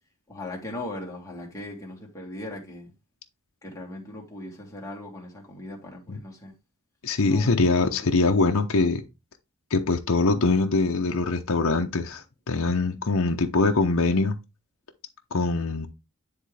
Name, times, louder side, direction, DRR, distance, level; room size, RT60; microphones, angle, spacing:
voice 1, 0.3-2.9 3.6-6.5 7.2-8.1, left 1 dB, 15° left, 2.0 m, -39 dB
voice 2, 7.0-9.0 9.7-14.3 15.3-15.9, left 3 dB, 65° left, 0.8 m, -23 dB
9.8 x 3.7 x 3.3 m
head